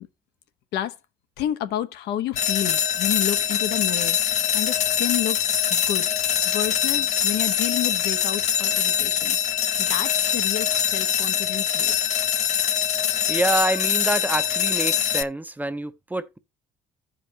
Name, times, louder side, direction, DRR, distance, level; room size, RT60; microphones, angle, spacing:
voice 1, 1.4-4.2 4.5-5.4 5.7-6.1 6.5-9.4 9.8-12.0, left 11 dB, 80° left, 1.0 m, -30 dB
sound 1, 2.4-15.2, left 9 dB, 45° left, 0.6 m, -23 dB
voice 2, 13.3-16.4, right 1 dB, 10° right, 0.6 m, -26 dB
14.5 x 5.1 x 2.8 m
cardioid pair, 110°, 17 cm